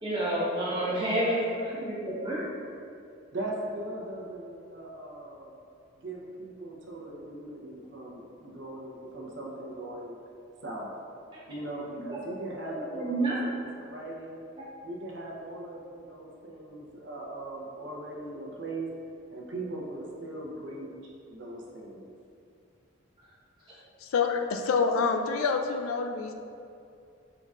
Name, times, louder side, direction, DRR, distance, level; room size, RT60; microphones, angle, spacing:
voice 1, 0.0-2.4 12.1-12.2 12.6-13.4, right 1 dB, 25° right, -8 dB, 1.1 m, -29 dB
voice 2, 3.3-5.6 6.0-10.2 10.6-10.9 11.5-14.4 14.8-18.9 19.3-22.0, right 2 dB, 65° right, -3 dB, 0.7 m, -39 dB
voice 3, 24.0-26.3, left 5 dB, 85° left, 5 dB, 0.4 m, -27 dB
5.2 x 3.7 x 2.4 m, 2.5 s
head